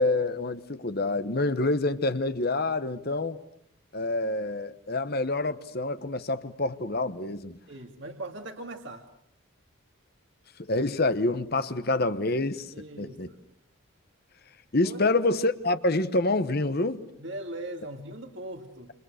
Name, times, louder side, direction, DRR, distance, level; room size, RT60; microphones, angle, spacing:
voice 1, 0.0-3.4 3.9-7.6 10.7-13.3 14.7-17.0, left 2 dB, 45° left, 1.2 m, -27 dB
voice 2, 7.7-9.1 12.7-13.4 14.8-15.0 17.2-18.9, right 1 dB, 60° right, 2.5 m, -39 dB
29.0 x 28.5 x 6.5 m
head